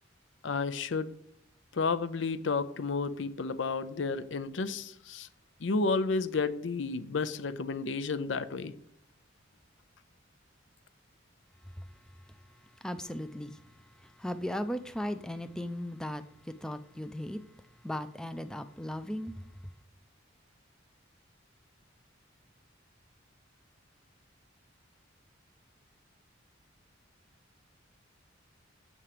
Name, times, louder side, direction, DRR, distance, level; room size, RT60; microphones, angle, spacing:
voice 1, 0.4-1.1 1.7-5.3 5.6-8.7, left 4 dB, 70° left, 0.6 m, -31 dB
voice 2, 12.8-13.6 14.0-17.4 17.8-19.3, equal, 5° left, 0.4 m, -37 dB
7.3 x 6.8 x 5.0 m
head